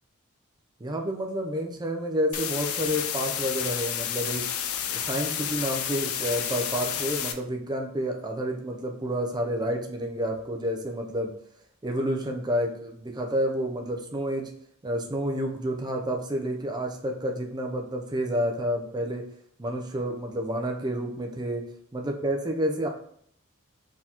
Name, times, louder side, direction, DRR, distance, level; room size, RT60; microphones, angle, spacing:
voice 1, 0.8-4.4 4.9-11.3 11.8-14.5 14.8-19.2 19.6-21.6 21.9-22.9, equal, 20° right, 2 dB, 0.5 m, -29 dB
sound 1, 2.3-7.3, left 9 dB, 90° left, 0.4 m, -30 dB
4.4 x 3.6 x 2.9 m, 0.66 s
head